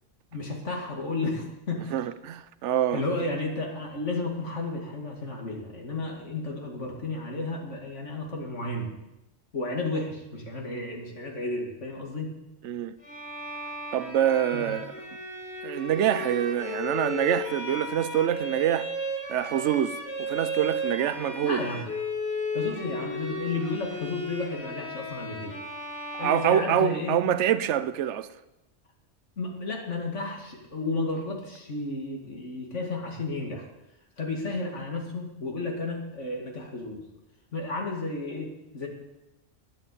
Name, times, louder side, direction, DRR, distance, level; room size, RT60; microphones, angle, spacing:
voice 1, 0.3-2.0 2.9-8.9 9.5-12.3 14.5-14.7 21.4-21.9 22.5-25.5 26.2-27.2 29.4-33.7 34.2-37.0 37.5-38.9, left 2 dB, 70° left, 2.7 m, -32 dB
voice 2, 1.9-3.0 12.6-13.0 13.9-14.9 15.6-18.9 19.3-21.6 26.2-28.3, right 10 dB, 75° right, 1.0 m, -26 dB
Bowed string instrument, 13.0-27.3, left 1 dB, 55° left, 3.5 m, -35 dB
13.0 x 10.5 x 8.4 m
omnidirectional pair, 1.3 m